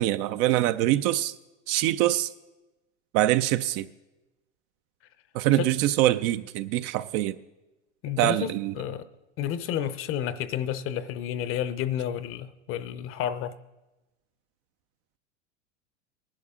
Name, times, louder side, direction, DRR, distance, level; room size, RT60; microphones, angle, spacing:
voice 1, 0.0-1.3 1.7-2.3 3.1-3.9 5.3-7.4 8.2-8.7, right 14 dB, 45° right, 0.4 m, -24 dB
voice 2, 8.0-8.5 8.7-9.0 9.4-13.6, left 10 dB, 35° left, 0.7 m, -30 dB
19.0 x 11.5 x 3.7 m
supercardioid pair, 120°, 36 cm